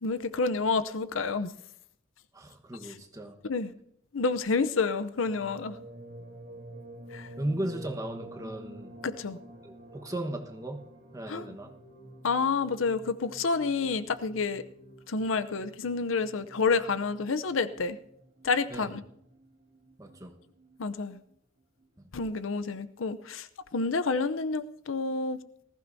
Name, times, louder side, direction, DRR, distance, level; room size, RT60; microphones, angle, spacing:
voice 1, 0.0-1.5 3.4-3.7 4.1-5.8 7.1-7.3 9.0-9.4 11.3-11.5 12.2-14.6 15.1-18.0 18.4-19.0 20.8-21.2 22.1-23.5 23.7-25.4, left 4 dB, 75° left, 0.7 m, -29 dB
voice 2, 2.3-3.4 7.4-8.9 9.6-10.8 11.1-11.7 18.7-19.0 20.0-20.3, right 1 dB, 15° right, 1.2 m, -36 dB
sound 1, 5.2-21.4 21.8-21.9, right 1 dB, 50° right, 2.1 m, -50 dB
19.5 x 15.0 x 2.7 m
head